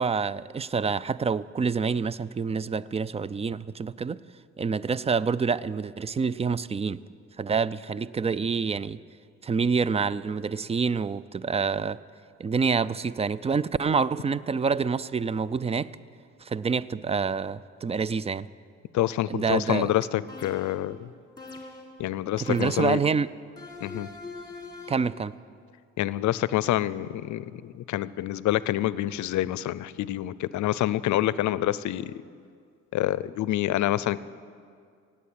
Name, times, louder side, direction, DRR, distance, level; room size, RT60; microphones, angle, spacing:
voice 1, 0.0-4.2 4.6-7.0 7.4-9.0 9.4-12.0 12.4-15.9 16.4-18.5 19.3-19.9 22.4-23.3 24.9-25.3, right 5 dB, 20° right, 18 dB, 0.3 m, -27 dB
voice 2, 18.9-21.1 22.0-23.0 23.8-24.1 26.0-32.1 32.9-34.2, left 14 dB, 70° left, 18 dB, 0.5 m, -27 dB
sound 1, 20.3-20.9 21.4-22.0 22.5-23.1 23.6-25.1, left 3 dB, 15° left, 2.1 m, -43 dB
17.0 x 8.4 x 8.6 m, 2.2 s
cardioid pair, 90°, 30 cm